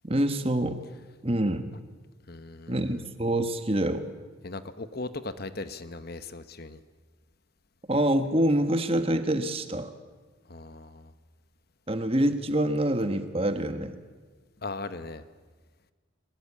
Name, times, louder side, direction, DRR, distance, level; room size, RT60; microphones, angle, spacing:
voice 1, 0.0-0.8 1.2-1.7 2.7-4.0 7.9-9.9 11.9-14.0, right 1 dB, 25° right, 9 dB, 1.4 m, -26 dB
voice 2, 2.3-3.0 4.4-6.8 10.5-11.1 14.6-15.2, left 3 dB, 50° left, 12 dB, 1.0 m, -38 dB
22.5 x 20.5 x 8.7 m, 1.4 s
head